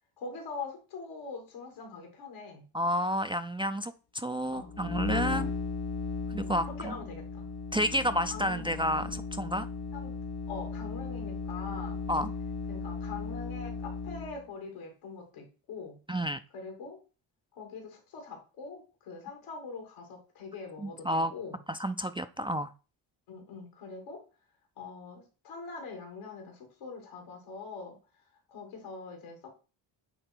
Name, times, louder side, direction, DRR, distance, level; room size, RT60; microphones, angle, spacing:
voice 1, 0.2-2.6 4.5-4.8 5.2-5.5 6.4-7.5 8.3-8.7 9.9-10.1 10.5-12.0 12.7-16.0 16.5-17.0 17.5-21.6 23.3-24.2 24.8-28.0 28.5-29.5, left 4 dB, 85° left, 2 dB, 2.7 m, -43 dB
voice 2, 2.7-5.5 6.3-7.0 7.7-9.7 12.1-12.3 16.1-16.4 20.8-21.3 21.7-22.7, equal, 10° right, 9 dB, 0.4 m, -30 dB
sound 1, 4.6-14.4, left 4 dB, 55° left, 1.0 m, -36 dB
9.0 x 3.3 x 4.5 m, 0.34 s
supercardioid pair, 65°, 48 cm